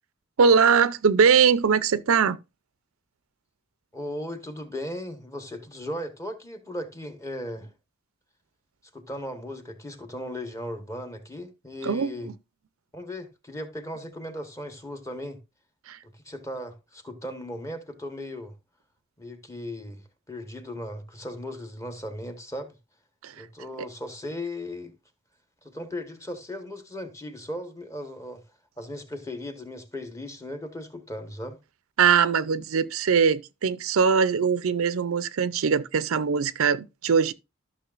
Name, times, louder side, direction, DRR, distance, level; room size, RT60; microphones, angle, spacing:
voice 1, 0.4-2.4 11.8-12.3 15.9-16.0 23.2-23.4 32.0-37.3, right 6 dB, 85° right, 0.5 m, -21 dB
voice 2, 3.9-7.7 8.9-12.3 12.9-15.4 16.0-18.5 19.2-20.0 20.3-22.7 23.4-24.9 25.6-28.4 28.8-31.6, left 1 dB, 15° left, 1.1 m, -37 dB
13.0 x 6.2 x 2.5 m
head